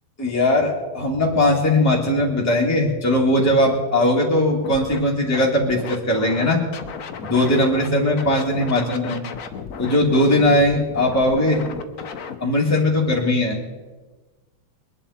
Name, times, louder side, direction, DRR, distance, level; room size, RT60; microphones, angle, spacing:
voice 1, 0.2-6.6 7.2-9.2 9.8-11.6 12.4-13.6, left 1 dB, 10° left, -3 dB, 2.2 m, -19 dB
Scratching (performance technique), 4.6-5.0 5.3-7.9 8.2-12.4, left 6 dB, 55° left, 1.1 m, -34 dB
22.0 x 11.0 x 4.3 m, 1.3 s
omnidirectional pair, 2.2 m